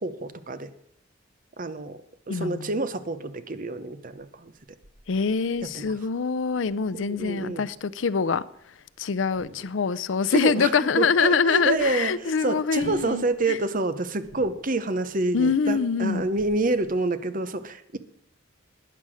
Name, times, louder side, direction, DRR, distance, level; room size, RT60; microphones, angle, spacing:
voice 1, 0.0-0.7 1.6-2.0 2.3-4.5 5.6-5.9 6.9-7.7 10.3-18.0, right 2 dB, 45° right, 0.9 m, -28 dB
voice 2, 2.3-2.7 5.1-8.4 9.0-13.6 15.3-16.2, left 5 dB, 80° left, 0.5 m, -24 dB
sound 1, 4.2-8.9 9.2-10.5 10.8-10.9 11.2-16.9, right 1 dB, 90° right, 1.2 m, -49 dB
12.0 x 9.6 x 6.3 m
head